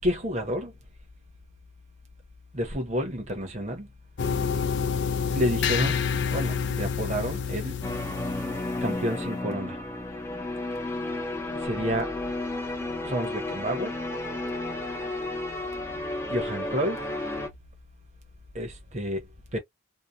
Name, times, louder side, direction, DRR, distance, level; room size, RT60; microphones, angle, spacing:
voice 1, 0.0-0.7 2.5-3.9 5.3-6.0 6.3-7.8 8.8-9.8 11.6-12.1 13.0-13.9 16.3-17.0 18.5-19.2 19.5-19.6, equal, 35° right, 0.9 m, -29 dB
sound 1, 4.2-9.3, left 6 dB, 60° left, 0.4 m, -28 dB
sound 2, 7.8-17.5, left 2 dB, 10° left, 0.5 m, -32 dB
2.8 x 2.2 x 2.3 m
head